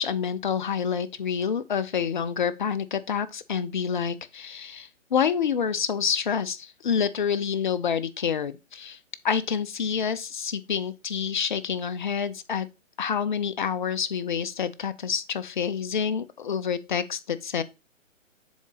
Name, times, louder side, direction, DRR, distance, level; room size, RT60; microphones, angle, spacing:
voice 1, 0.0-9.0 9.2-12.7 13.0-17.6, left 7 dB, 40° left, 0.5 m, -28 dB
7.1 x 3.8 x 3.8 m
figure-of-eight pair, 140°, 39 cm